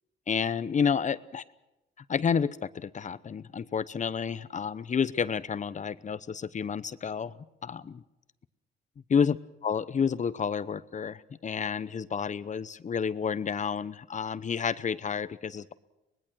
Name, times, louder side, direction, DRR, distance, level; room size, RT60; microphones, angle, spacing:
voice 1, 0.3-1.4 2.1-7.4 7.6-8.0 9.1-9.4 9.6-15.7, left 6 dB, 40° left, 16 dB, 0.8 m, -30 dB
24.5 x 20.0 x 6.3 m, 0.95 s
cardioid pair, 90°, 20 cm